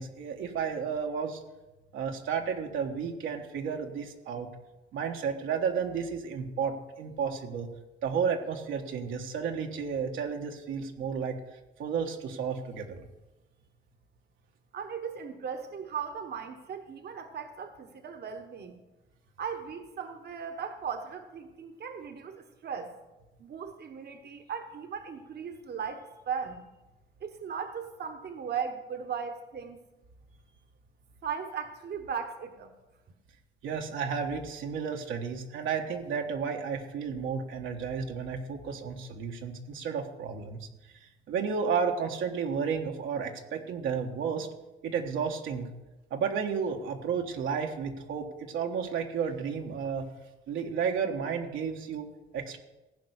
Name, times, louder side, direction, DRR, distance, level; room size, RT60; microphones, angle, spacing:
voice 1, 0.0-1.4 1.9-4.5 4.9-7.7 8.0-11.3 11.8-13.1 33.6-40.7 41.0-44.5 44.8-45.7 46.1-50.1 50.5-52.1 52.3-52.6, right 6 dB, 80° right, 2 dB, 1.4 m, -32 dB
voice 2, 14.7-18.8 19.4-22.9 23.4-26.6 27.2-29.8 31.2-32.7, right 7 dB, 55° right, 6 dB, 1.2 m, -37 dB
15.5 x 5.3 x 8.2 m, 1.1 s
cardioid pair, 90°, 20 cm